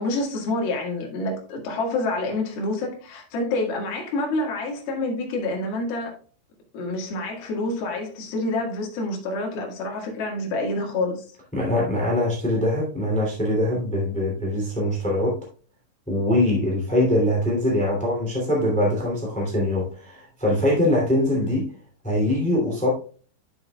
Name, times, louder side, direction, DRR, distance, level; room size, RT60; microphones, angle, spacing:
voice 1, 0.0-6.1 6.7-11.2, left 2 dB, 60° left, 3.3 m, -27 dB
voice 2, 11.5-15.4 16.1-21.7 22.0-22.9, left 1 dB, 10° left, 0.3 m, -23 dB
10.5 x 6.9 x 2.3 m
omnidirectional pair, 5.5 m